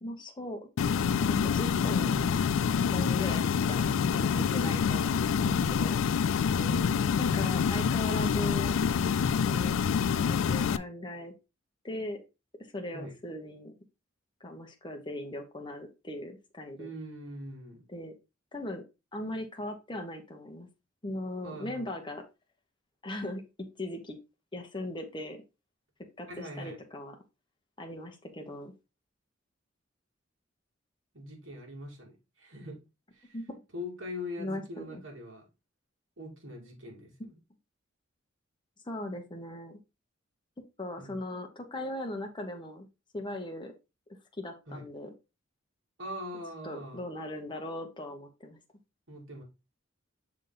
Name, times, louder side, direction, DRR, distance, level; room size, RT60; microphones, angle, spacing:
voice 1, 0.0-0.6 1.2-2.3 2.9-6.0 7.2-8.8 9.4-9.8 10.2-11.3 11.8-12.2 12.7-13.7 14.4-16.9 17.9-18.1 18.5-18.8 19.1-20.7 21.0-22.2 23.0-24.2 24.5-25.4 26.2-27.2 27.8-28.7 33.3-33.5 34.4-35.0 38.8-39.8 40.8-42.9 43.1-43.7 44.4-45.1 46.6-48.6, left 1 dB, 25° left, 3 dB, 1.1 m, -39 dB
sound 1, 0.8-10.8, left 6 dB, 85° left, 0.3 m, -27 dB
voice 2, 6.6-7.4 12.9-13.2 16.8-17.9 21.4-21.9 26.3-26.8 31.1-32.8 33.1-33.4 33.7-35.5 36.2-37.4 41.0-41.2 44.7-44.9 46.0-47.0 49.1-49.4, left 1 dB, 70° right, 0 dB, 2.3 m, -42 dB
6.6 x 3.6 x 3.9 m, 0.27 s
head